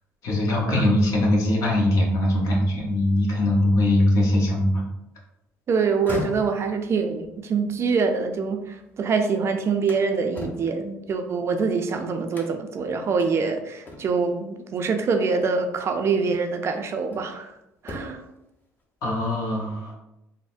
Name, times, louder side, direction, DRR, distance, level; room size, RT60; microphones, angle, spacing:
voice 1, 0.2-4.8 19.0-19.9, left 1 dB, 65° left, -1 dB, 0.9 m, -21 dB
voice 2, 5.7-17.6 17.8-18.2, right 5 dB, 45° right, 6 dB, 0.4 m, -25 dB
sound 1, 5.8-9.0 9.4-11.8 12.3-12.8 13.2-13.3 13.8-14.4 15.6-15.7 16.3-17.4 17.8-18.4, left 1 dB, 30° left, 0.8 m, -39 dB
3.8 x 2.1 x 2.5 m, 0.88 s
supercardioid pair, 75°, 6 cm